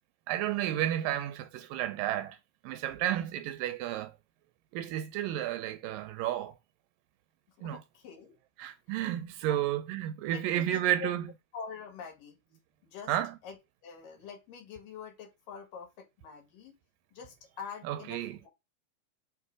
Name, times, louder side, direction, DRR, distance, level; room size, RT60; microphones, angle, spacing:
voice 1, 0.3-2.4 2.6-4.2 4.7-6.5 7.6-7.8 8.6-11.3 13.1-13.4 17.8-18.4, right 12 dB, 85° right, 2.3 m, -32 dB
voice 2, 7.6-8.4 9.5-9.6 10.3-11.1 11.5-12.4 12.8-13.2 13.4-13.6 13.8-16.7 17.1-18.5, left 6 dB, 75° left, 3.5 m, -45 dB
7.0 x 3.1 x 4.8 m
omnidirectional pair, 4.0 m